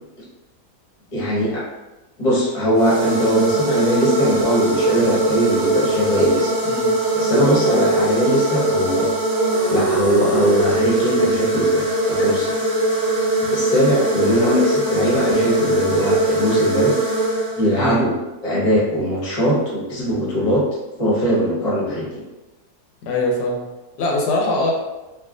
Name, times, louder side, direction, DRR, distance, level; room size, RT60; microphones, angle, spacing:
voice 1, 1.1-1.6 2.2-6.5 7.1-9.1 9.7-12.6 13.5-16.9 17.6-18.1 18.4-20.6 21.0-22.0, equal, 30° left, -7 dB, 0.9 m, -20 dB
sound 1, 2.7-17.9, right 2 dB, 55° right, 1.3 m, -21 dB
voice 2, 17.7-18.1 23.0-23.6 24.0-24.7, left 2 dB, 90° left, -1 dB, 1.3 m, -22 dB
3.3 x 2.5 x 2.5 m, 1.1 s
omnidirectional pair, 1.7 m